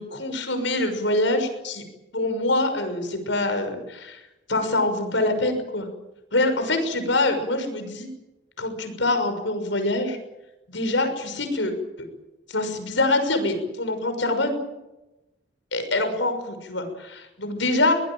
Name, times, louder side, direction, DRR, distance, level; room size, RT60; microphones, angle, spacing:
voice 1, 0.0-1.8 2.1-4.2 4.5-5.9 6.3-8.1 8.6-10.2 10.7-11.7 12.5-14.6 15.7-17.9, left 2 dB, 80° left, 7 dB, 6.2 m, -24 dB
23.5 x 19.5 x 9.0 m, 0.99 s
head